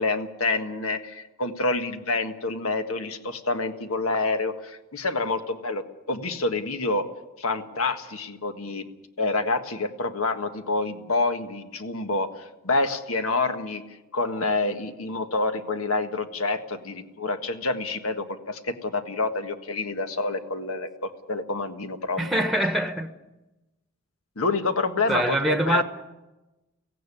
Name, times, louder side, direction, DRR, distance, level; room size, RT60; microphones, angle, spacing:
voice 1, 0.0-7.1 7.4-8.8 9.2-12.3 12.6-13.8 14.1-22.3 24.3-25.8, left 3 dB, 80° left, 1.6 m, -27 dB
voice 2, 22.2-23.1 25.1-25.8, right 1 dB, ahead, 1.2 m, -24 dB
17.0 x 15.5 x 9.9 m
head